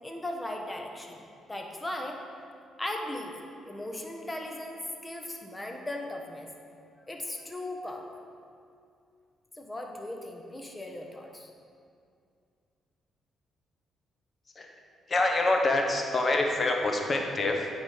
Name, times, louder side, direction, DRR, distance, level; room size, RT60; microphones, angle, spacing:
voice 1, 0.0-2.2 2.8-3.3 3.6-6.5 7.0-8.2 9.6-11.5, left 1 dB, 15° left, 2 dB, 1.1 m, -38 dB
voice 2, 15.1-17.8, left 2 dB, 35° left, 2 dB, 1.1 m, -26 dB
8.8 x 5.0 x 5.5 m, 2.3 s
cardioid pair, 90°, 0 cm